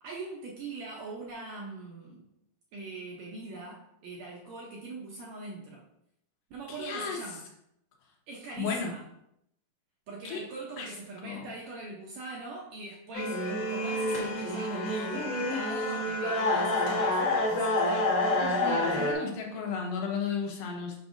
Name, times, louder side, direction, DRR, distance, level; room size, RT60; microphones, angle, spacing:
voice 1, 0.0-2.3 2.7-5.8 6.5-7.4 8.3-9.0 10.1-18.2, right 3 dB, 75° right, -2 dB, 1.7 m, -42 dB
voice 2, 6.7-7.2 8.6-8.9 10.2-10.4 10.8-10.9 11.2-11.5 18.3-21.0, left 5 dB, 75° left, 0 dB, 2.5 m, -34 dB
sound 1, 13.1-19.1, left 1 dB, 55° left, 1.2 m, -28 dB
6.5 x 5.9 x 2.6 m, 0.76 s
omnidirectional pair, 4.1 m